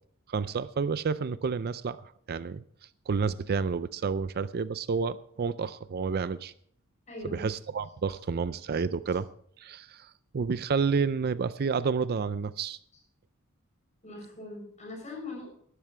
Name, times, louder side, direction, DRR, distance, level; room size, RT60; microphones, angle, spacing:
voice 1, 0.3-2.6 3.1-6.5 7.2-9.3 9.6-12.8, right 5 dB, 45° right, 15 dB, 0.4 m, -30 dB
voice 2, 7.1-7.4 8.1-8.2 14.0-15.5, left 2 dB, 35° left, -1 dB, 7.2 m, -41 dB
18.0 x 12.5 x 3.3 m, 0.63 s
head